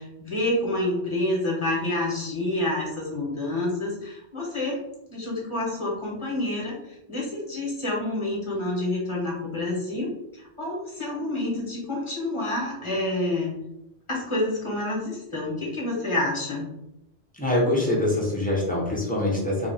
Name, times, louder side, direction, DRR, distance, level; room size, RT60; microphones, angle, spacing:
voice 1, 0.0-4.8 5.1-10.1 10.3-13.5 14.1-16.7, left 1 dB, 30° left, -4 dB, 1.0 m, -28 dB
voice 2, 17.3-19.7, left 1 dB, 10° left, -5 dB, 0.8 m, -24 dB
2.8 x 2.4 x 4.0 m, 0.84 s
omnidirectional pair, 1.2 m